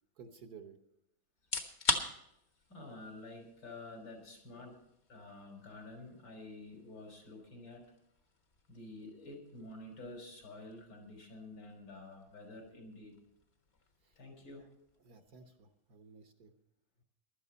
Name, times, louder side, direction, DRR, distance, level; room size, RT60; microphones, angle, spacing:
voice 1, 0.2-0.8 14.0-14.1 15.0-16.5, right 5 dB, 55° right, 6 dB, 1.6 m, -54 dB
sound 1, 1.4-16.2, left 3 dB, 35° left, 1.4 m, -44 dB
voice 2, 2.7-4.8 5.1-7.8 8.7-13.1 14.2-14.6, left 2 dB, 75° left, 3 dB, 4.4 m, -49 dB
16.0 x 12.0 x 4.1 m, 0.80 s
omnidirectional pair, 2.1 m